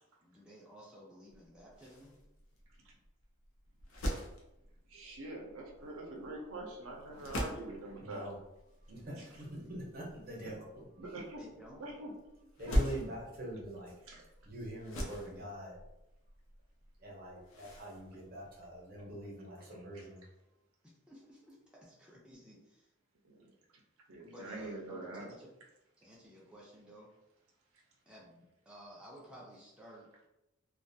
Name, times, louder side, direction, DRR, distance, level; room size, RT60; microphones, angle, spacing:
voice 1, 0.2-2.1 11.4-11.8 21.1-22.9 24.2-25.5 26.0-27.1 28.1-30.1, equal, 5° right, -5 dB, 0.4 m, -54 dB
sound 1, 1.3-19.2, equal, 75° left, 0.5 m, -42 dB
voice 2, 4.9-8.3 11.0-11.4 11.8-12.1 12.7-12.8 14.1-14.2 23.2-23.5 24.1-25.3, right 2 dB, 80° right, 0 dB, 0.5 m, -44 dB
voice 3, 8.0-8.4 8.9-10.9 12.6-13.9 14.4-15.8 17.0-20.2, right 1 dB, 45° right, -3 dB, 0.7 m, -44 dB
2.4 x 2.2 x 2.6 m, 0.91 s
head